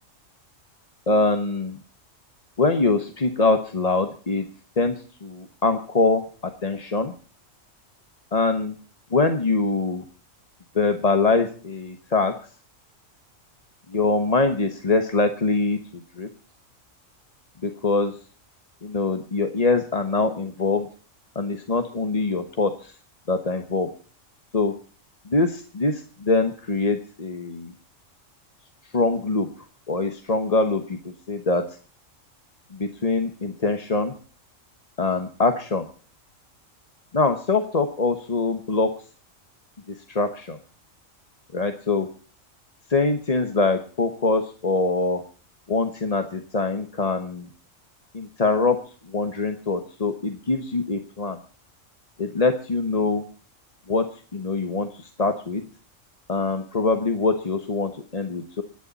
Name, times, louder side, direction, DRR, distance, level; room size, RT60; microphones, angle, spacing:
voice 1, 1.1-1.8 2.6-4.5 4.8-7.1 8.3-8.7 9.1-10.0 10.7-12.3 13.9-15.8 16.2-16.3 17.6-18.2 18.8-20.9 21.3-22.9 23.3-23.9 24.5-24.7 25.3-27.7 28.9-29.5 29.9-31.6 32.7-34.1 35.0-35.9 37.1-38.9 39.9-40.6 41.5-42.1 42.9-45.2 45.7-47.5 48.1-48.8 49.1-51.4 52.2-53.2 53.9-54.0 54.3-55.6 56.3-58.6, left 3 dB, 30° left, 6 dB, 1.1 m, -23 dB
25.5 x 10.0 x 4.1 m, 0.40 s
omnidirectional pair, 1.3 m